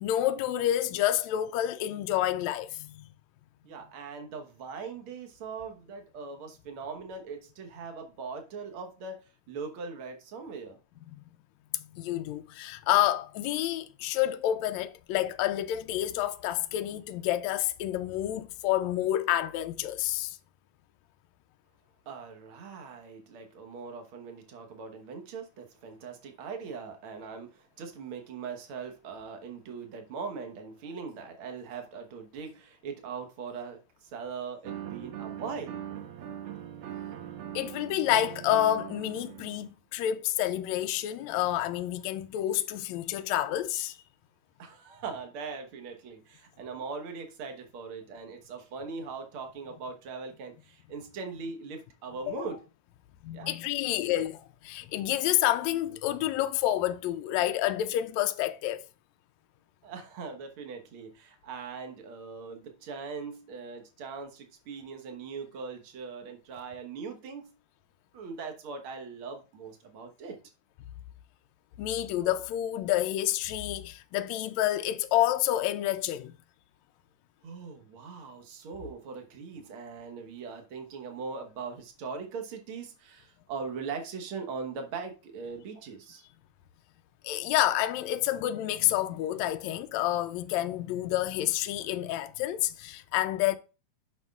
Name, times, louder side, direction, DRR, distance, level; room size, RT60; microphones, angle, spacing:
voice 1, 0.0-2.9 11.9-20.4 37.5-44.0 52.3-52.4 53.2-58.8 71.8-76.3 87.2-93.6, left 13 dB, 80° left, 1.6 m, -29 dB
voice 2, 3.6-10.8 22.0-35.8 44.6-52.6 53.3-53.5 59.8-67.5 68.1-70.4 77.4-86.2, right 5 dB, 55° right, 1.6 m, -40 dB
sound 1, 34.7-39.7, right 10 dB, 75° right, 2.3 m, -41 dB
9.3 x 6.2 x 2.4 m
omnidirectional pair, 3.6 m